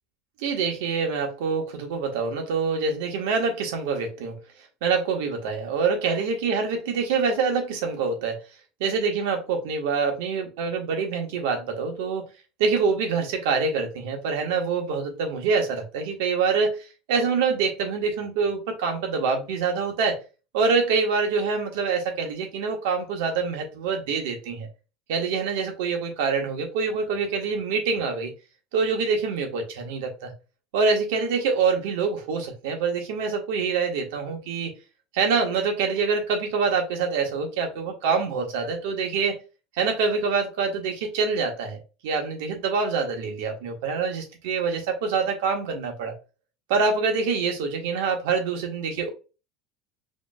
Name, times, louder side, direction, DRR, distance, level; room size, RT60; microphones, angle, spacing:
voice 1, 0.4-4.4 4.8-8.4 8.8-12.2 12.6-16.8 17.1-20.2 20.5-24.7 25.1-28.3 28.7-30.3 30.7-34.7 35.1-39.4 39.7-41.8 42.0-46.1 46.7-49.1, right 5 dB, 80° right, 1.5 m, -25 dB
5.0 x 3.1 x 2.4 m
cardioid pair, 160°, 0 cm